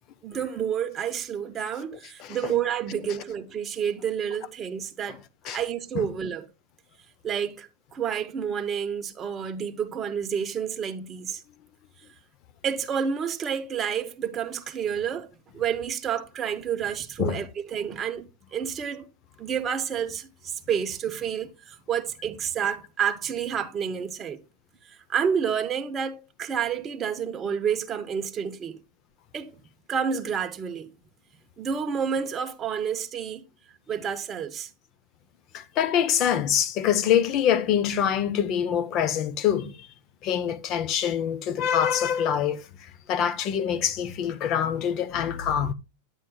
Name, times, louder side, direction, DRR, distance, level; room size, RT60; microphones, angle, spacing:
voice 1, 0.2-5.2 5.5-6.4 7.2-11.4 12.6-15.3 15.5-19.1 19.4-24.4 24.8-28.8 29.3-29.6 29.9-30.9 31.6-33.4 33.9-34.7, right 7 dB, 20° right, 0.7 m, -29 dB
voice 2, 2.2-2.5 5.4-5.6 5.9-6.1 17.2-17.5 35.5-39.9 40.2-45.7, left 9 dB, 35° left, 0.6 m, -25 dB
10.0 x 8.8 x 2.2 m
supercardioid pair, 160°, 0 cm